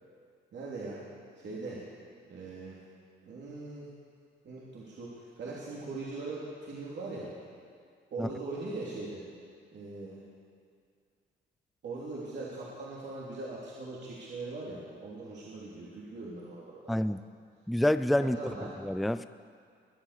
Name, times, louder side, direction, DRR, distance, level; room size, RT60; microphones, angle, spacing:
voice 1, 0.5-1.1 1.4-1.8 2.2-2.8 3.2-3.9 4.4-7.3 8.1-9.2 9.7-10.2 11.8-17.0 18.2-18.8, right 3 dB, 60° right, -6 dB, 3.1 m, -40 dB
voice 2, 16.9-17.2 17.7-19.2, left 1 dB, ahead, 13 dB, 0.4 m, -28 dB
22.5 x 8.3 x 6.7 m, 2.2 s
cardioid pair, 90°, 20 cm